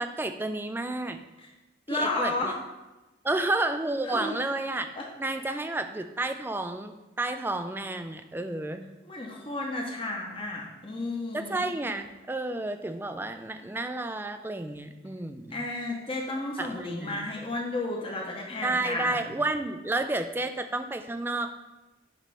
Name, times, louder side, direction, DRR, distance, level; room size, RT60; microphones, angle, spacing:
voice 1, 0.0-1.2 1.9-2.5 3.2-4.9 5.2-8.9 11.3-15.6 16.6-17.3 18.6-21.5, right 2 dB, 10° right, 7 dB, 0.4 m, -31 dB
voice 2, 1.9-2.6 4.0-4.4 5.0-5.1 9.0-11.7 15.5-19.2, left 2 dB, 30° left, -1 dB, 0.9 m, -32 dB
8.9 x 3.2 x 5.5 m, 1.1 s
head